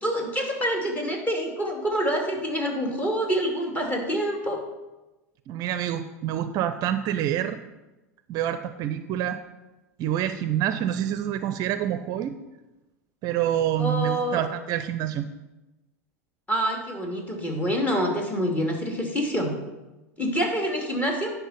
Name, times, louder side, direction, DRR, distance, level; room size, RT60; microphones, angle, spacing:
voice 1, 0.0-4.6 13.8-14.4 16.5-19.5 20.2-21.3, equal, 20° left, 1 dB, 2.4 m, -26 dB
voice 2, 5.5-7.6 8.3-9.4 10.0-12.4 13.2-15.3, right 11 dB, 45° right, 11 dB, 0.5 m, -27 dB
9.8 x 5.4 x 5.7 m, 1.1 s
hypercardioid pair, 85°, 9 cm